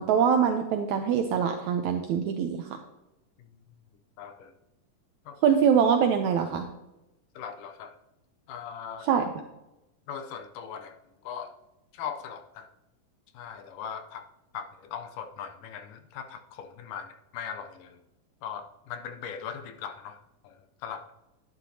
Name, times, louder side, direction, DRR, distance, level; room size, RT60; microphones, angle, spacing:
voice 1, 0.0-2.8 5.4-6.7 9.0-9.3, right 7 dB, 80° right, 5 dB, 1.7 m, -24 dB
voice 2, 4.2-4.5 5.3-5.4 7.4-8.0 8.5-9.1 10.1-11.0 11.2-11.5 11.9-12.7 13.3-14.2 14.5-18.0 18.4-20.5 20.8-21.0, left 7 dB, 75° left, 8 dB, 2.1 m, -39 dB
11.0 x 9.9 x 2.8 m, 0.94 s
omnidirectional pair, 4.0 m